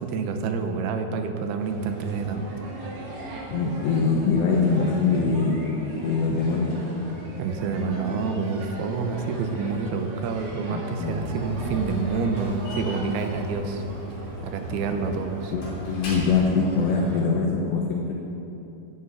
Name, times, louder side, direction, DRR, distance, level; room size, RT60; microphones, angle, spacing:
voice 1, 0.0-2.5 5.2-5.3 7.4-13.8 14.4-15.5, right 5 dB, 75° right, 6 dB, 2.7 m, -28 dB
sound 1, 1.6-17.2, right 1 dB, 50° right, 3.1 m, -38 dB
voice 2, 3.5-5.6 6.0-6.8 10.7-11.4 15.5-18.1, left 4 dB, 90° left, -2 dB, 3.4 m, -23 dB
Slam, 10.8-17.0, equal, 55° left, 4.9 m, -37 dB
11.0 x 11.0 x 8.2 m, 2.9 s
omnidirectional pair, 4.8 m